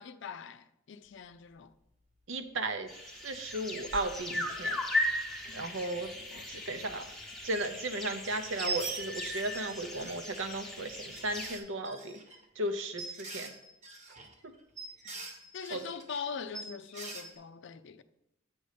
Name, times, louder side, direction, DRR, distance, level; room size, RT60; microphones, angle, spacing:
voice 1, 0.0-1.7 5.5-5.7 6.1-6.9 15.2-18.0, left 6 dB, 60° left, 0.4 m, -43 dB
voice 2, 2.3-2.9 3.2-4.8 5.5-6.1 6.5-7.1 7.4-12.2 12.6-13.5 15.7-15.8, right 2 dB, 65° right, 0.8 m, -35 dB
sound 1, 2.9-11.6, left 1 dB, ahead, 0.8 m, -37 dB
sound 2, 3.9-4.1 4.6-4.7 4.9-5.0 5.7-7.1 7.4-8.0 8.3-10.5 11.1-16.2 16.5-17.4, right 4 dB, 35° right, 1.1 m, -43 dB
7.7 x 5.4 x 5.1 m
head